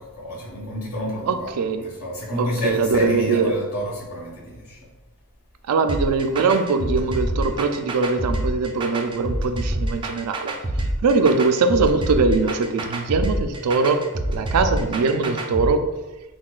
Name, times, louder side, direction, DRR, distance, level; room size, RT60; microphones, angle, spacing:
voice 1, 0.0-4.8, equal, 75° left, -5 dB, 1.4 m, -29 dB
voice 2, 1.3-1.8 2.4-3.5 5.7-10.5 11.0-14.0 14.3-15.9, right 4 dB, 90° right, 8 dB, 0.4 m, -21 dB
sound 1, 5.9-15.7, right 1 dB, 20° right, 0.4 m, -26 dB
5.7 x 2.2 x 2.4 m, 1.1 s
head